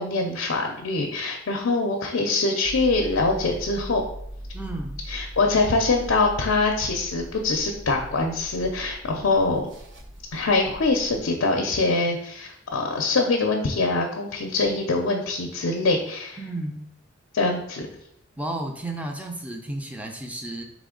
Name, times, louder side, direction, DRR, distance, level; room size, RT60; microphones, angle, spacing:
voice 1, 0.0-4.0 5.1-9.7 10.3-16.4 17.3-17.9, left 3 dB, 75° left, 2 dB, 0.5 m, -24 dB
sound 1, 2.6-11.2, equal, 60° right, 0.8 m, -39 dB
voice 2, 4.5-5.0 16.4-16.8 18.4-20.6, right 1 dB, 5° right, 3 dB, 0.5 m, -32 dB
4.2 x 3.1 x 3.7 m, 0.73 s
head